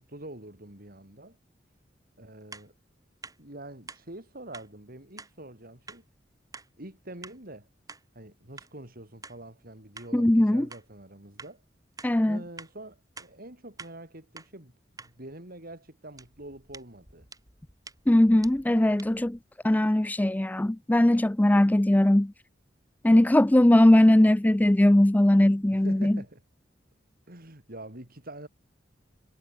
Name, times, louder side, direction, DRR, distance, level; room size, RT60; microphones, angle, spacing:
voice 1, 0.0-1.4 2.2-2.7 3.4-6.0 6.8-7.7 8.1-11.6 12.3-17.3 25.7-26.4 27.3-28.5, right 1 dB, 50° right, 7.1 m, -45 dB
sound 1, 2.5-2.7 3.2-3.4 3.9-4.0 4.5-4.7 5.2-5.3 5.9-6.0 6.5-6.7 7.2-7.4 7.9-8.0 8.6-8.7 9.2-9.4 10.0-10.1 10.7-10.8 11.4-11.5 12.0-12.1 12.6-12.7 13.2-13.3 13.8-13.9 14.4-14.5 15.0-15.1 16.1-19.4, right 3 dB, 20° right, 5.2 m, -47 dB
voice 2, 10.1-10.7 12.0-12.4 18.1-19.4 19.6-22.3 23.0-26.1, left 1 dB, 10° left, 0.4 m, -20 dB
head